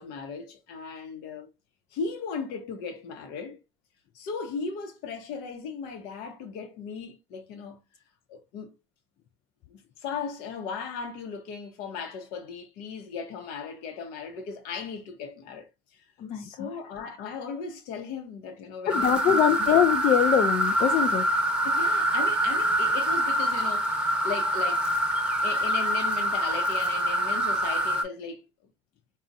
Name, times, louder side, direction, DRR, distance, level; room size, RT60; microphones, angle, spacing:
voice 1, 0.0-1.5 1.9-3.6 4.1-7.8 8.3-8.8 9.7-15.7 16.3-19.7 21.6-24.9 25.4-28.4, left 5 dB, 75° left, 0.9 m, -37 dB
voice 2, 16.2-16.7 18.9-21.3, left 10 dB, 45° left, 0.4 m, -23 dB
sound 1, 18.9-28.0, right 1 dB, 5° right, 0.9 m, -25 dB
4.0 x 2.3 x 2.6 m
supercardioid pair, 85°, 16 cm